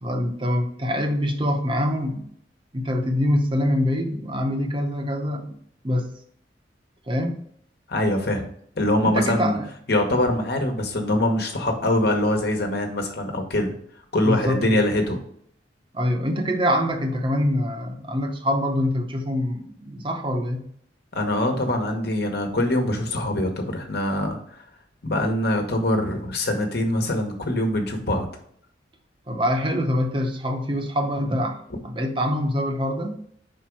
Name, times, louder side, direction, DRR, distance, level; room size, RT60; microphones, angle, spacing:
voice 1, 0.0-2.3 2.7-5.6 5.8-6.1 7.1-7.4 9.0-9.7 14.2-15.0 15.9-20.6 29.3-31.6 31.8-33.2, equal, 30° right, 4 dB, 0.8 m, -24 dB
voice 2, 7.9-8.5 8.8-9.6 9.9-13.7 14.1-15.2 21.1-24.6 25.0-28.3, left 1 dB, 60° left, 4 dB, 1.3 m, -23 dB
5.1 x 4.5 x 4.6 m, 0.64 s
head